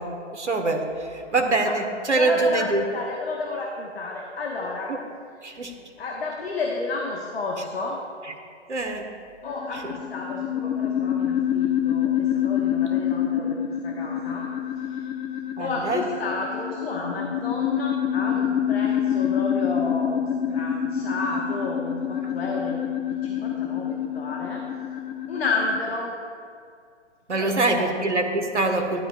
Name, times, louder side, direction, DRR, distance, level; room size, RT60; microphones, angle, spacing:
voice 1, 0.0-2.8 4.9-5.0 5.4-5.7 8.2-8.3 8.7-9.1 9.7-9.9 15.6-16.0 27.3-29.1, right 3 dB, 75° right, 5 dB, 1.5 m, -24 dB
voice 2, 1.4-1.7 2.2-4.9 5.4-5.6 6.0-8.0 9.4-13.6 13.8-15.1 15.6-20.2 20.5-22.8 23.1-24.6 25.3-26.1 27.3-27.9, left 3 dB, 55° left, -1 dB, 1.5 m, -31 dB
sound 1, 9.5-25.8, left 9 dB, 40° left, 0.9 m, -27 dB
15.0 x 12.0 x 2.4 m, 2.3 s
figure-of-eight pair, 120°, 35 cm